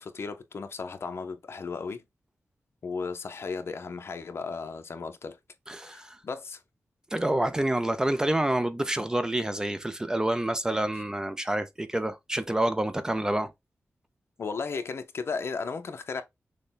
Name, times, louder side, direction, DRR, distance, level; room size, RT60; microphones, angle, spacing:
voice 1, 0.0-2.0 2.8-5.4 5.8-6.6 14.4-16.2, left 4 dB, 60° left, 0.7 m, -35 dB
voice 2, 5.7-6.2 7.1-13.5, right 1 dB, 15° right, 0.4 m, -28 dB
6.5 x 2.2 x 3.6 m
wide cardioid pair, 150°, 5 cm